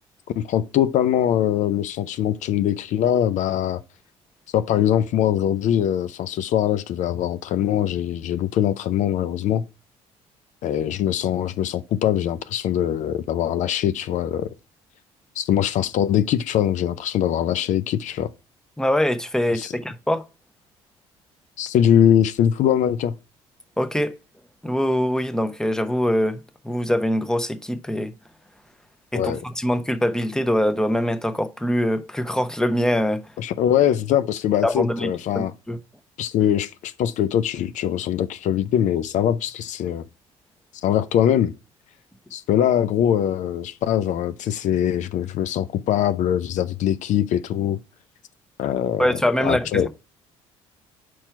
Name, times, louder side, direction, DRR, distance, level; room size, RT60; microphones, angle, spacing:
voice 1, 0.4-3.8 4.5-9.6 10.6-14.5 15.4-18.3 19.5-19.7 21.6-23.1 29.1-29.4 33.4-35.5 36.2-40.0 40.8-41.5 42.3-47.8 48.6-49.1 49.4-49.9, left 10 dB, 65° left, 0.4 m, -22 dB
voice 2, 18.8-20.2 23.8-24.1 24.6-28.1 29.1-33.2 34.6-35.1 35.3-35.8 49.0-49.9, equal, 5° left, 0.8 m, -23 dB
4.6 x 4.4 x 5.7 m
supercardioid pair, 70°, 14 cm